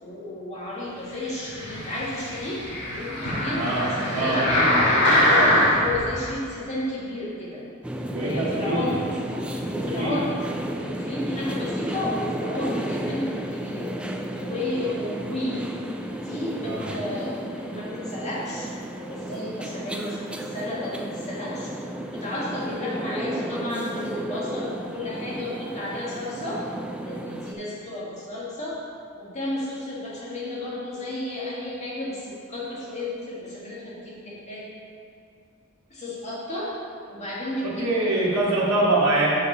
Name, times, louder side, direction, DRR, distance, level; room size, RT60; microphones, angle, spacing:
voice 1, 0.0-4.5 5.2-7.6 8.2-9.0 9.8-10.3 10.8-13.9 14.4-15.7 16.2-21.7 22.1-26.6 27.0-28.8 29.2-34.7 35.9-36.7 37.1-38.1, left 1 dB, 30° left, -7 dB, 1.9 m, -32 dB
sound 1, 1.4-6.0 6.6-6.7, left 1 dB, 55° left, 1.8 m, -22 dB
voice 2, 3.5-5.5 8.0-9.1 9.7-10.3 16.6-16.9 37.6-39.3, right 2 dB, 85° right, -7 dB, 1.6 m, -25 dB
sound 2, 7.8-27.5, right 1 dB, 5° right, 0.4 m, -33 dB
6.7 x 5.3 x 5.6 m, 2.5 s
head